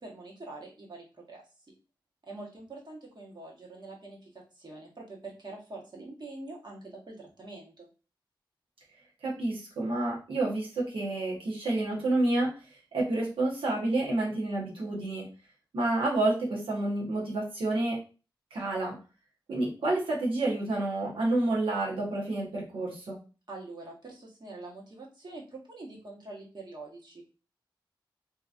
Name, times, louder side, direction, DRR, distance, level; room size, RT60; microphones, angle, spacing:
voice 1, 0.0-1.4 2.2-7.9 23.5-27.2, right 2 dB, 55° right, -2 dB, 1.2 m, -45 dB
voice 2, 9.2-12.5 12.9-15.3 15.7-18.0 18.5-19.0 19.5-23.2, right 2 dB, 90° right, -3 dB, 1.0 m, -29 dB
2.9 x 2.5 x 2.5 m, 0.34 s
cardioid pair, 45°, 9 cm